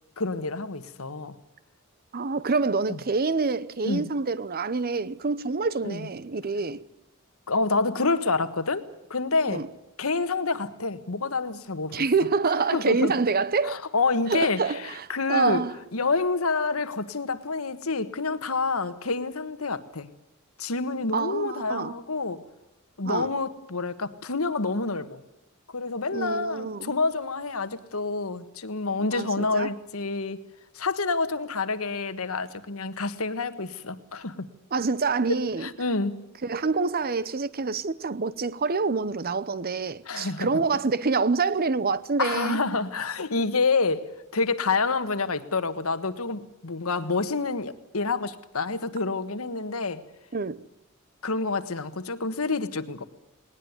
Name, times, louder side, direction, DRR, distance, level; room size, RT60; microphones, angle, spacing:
voice 1, 0.2-1.3 2.9-3.0 3.8-4.0 5.8-6.1 7.5-9.6 10.0-12.0 12.7-13.1 13.6-15.6 15.9-20.1 20.6-22.4 23.0-25.2 25.7-30.4 30.7-34.5 35.3-36.2 40.1-40.5 42.2-44.1 44.3-50.0 51.2-53.0, left 3 dB, 90° left, 1.5 m, -28 dB
voice 2, 2.1-6.8 9.5-9.7 11.9-13.8 14.3-15.8 21.1-21.9 23.0-23.3 26.1-26.9 29.1-29.7 34.7-35.7 36.4-42.6 50.3-50.7, right 4 dB, 45° right, 0.8 m, -26 dB
20.0 x 19.0 x 9.5 m
head